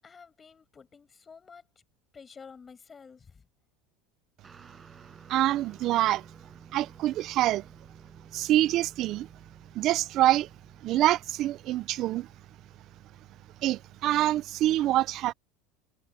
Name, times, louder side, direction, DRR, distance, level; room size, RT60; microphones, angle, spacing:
voice 1, 0.0-1.7 2.1-3.5, left 5 dB, 20° left, 7.1 m, -50 dB
Guitar, 4.4-14.2, right 4 dB, 15° right, 7.4 m, -55 dB
voice 2, 5.3-6.3 6.7-7.6 8.3-9.3 9.7-10.5 10.8-12.3 13.6-15.3, right 14 dB, 45° right, 0.6 m, -25 dB
supercardioid pair, 140°, 0 cm